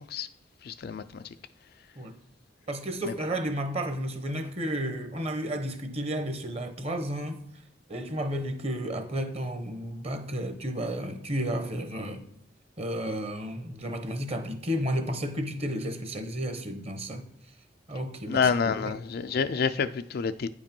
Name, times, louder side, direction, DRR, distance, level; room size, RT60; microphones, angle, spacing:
voice 1, 0.7-1.2 18.3-20.5, left 6 dB, 55° left, 0.4 m, -28 dB
voice 2, 2.7-7.4 7.9-12.2 12.8-17.2 17.9-18.5 18.8-19.0, equal, 35° right, 1.0 m, -32 dB
9.3 x 5.1 x 5.3 m
head